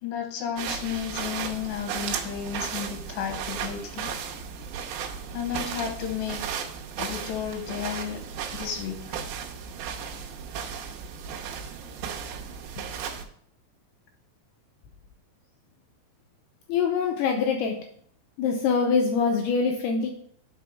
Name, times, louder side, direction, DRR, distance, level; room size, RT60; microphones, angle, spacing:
voice 1, 0.0-4.1 5.3-6.4 7.0-8.2 8.5-9.2, left 8 dB, 65° left, 2 dB, 2.6 m, -33 dB
sound 1, 0.6-13.3, right 7 dB, 80° right, 2.8 m, -35 dB
voice 2, 16.7-17.8 18.4-20.1, left 5 dB, 80° left, 2 dB, 2.3 m, -24 dB
6.0 x 4.8 x 5.7 m, 0.62 s
omnidirectional pair, 5.3 m